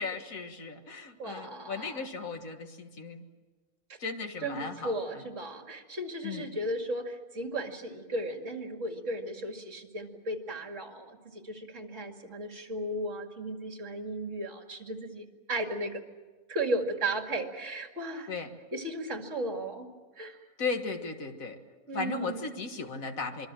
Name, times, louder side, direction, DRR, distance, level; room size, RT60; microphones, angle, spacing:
voice 1, 0.0-3.2 4.0-4.9 6.2-6.5 18.3-18.5 20.6-21.6 21.9-23.5, left 4 dB, 70° left, 6 dB, 2.1 m, -36 dB
voice 2, 1.2-2.1 3.9-4.0 4.4-16.0 16.5-18.3 18.7-19.9 20.2-20.4 21.9-22.5, right 1 dB, 60° right, 4 dB, 2.7 m, -35 dB
26.0 x 23.0 x 7.6 m, 1.3 s
omnidirectional pair, 1.5 m